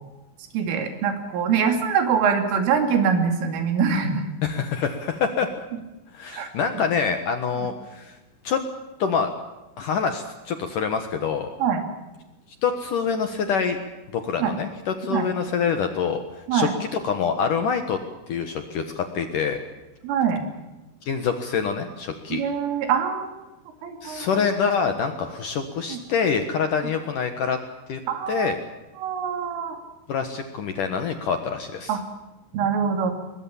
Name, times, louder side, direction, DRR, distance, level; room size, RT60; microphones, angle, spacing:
voice 1, 0.5-4.2 6.3-6.5 11.6-11.8 14.4-14.5 15.1-15.3 16.5-16.7 20.0-20.4 22.3-23.3 23.8-24.3 25.9-26.0 28.1-28.6 29.0-29.8 31.9-32.0 32.5-33.1, right 6 dB, 90° right, 6 dB, 5.2 m, -23 dB
voice 2, 4.4-5.5 6.1-8.2 8.4-8.6 9.0-9.3 9.8-11.5 12.6-13.8 14.1-16.2 16.5-18.0 18.3-19.6 21.0-22.4 24.0-27.6 27.9-28.0 28.3-28.6 30.1-32.0, left 6 dB, 65° left, 7 dB, 2.2 m, -25 dB
22.5 x 21.5 x 7.3 m, 1.1 s
omnidirectional pair, 5.6 m